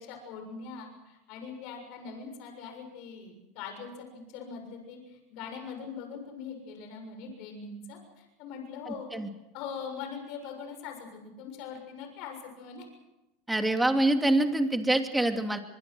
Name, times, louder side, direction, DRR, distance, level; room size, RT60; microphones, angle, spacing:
voice 1, 0.0-9.1 9.5-12.9, left 6 dB, 60° left, 5 dB, 6.8 m, -42 dB
voice 2, 8.9-9.3 13.5-15.6, right 1 dB, 5° right, 5 dB, 2.8 m, -25 dB
23.5 x 23.0 x 6.3 m, 0.96 s
hypercardioid pair, 110°, 0 cm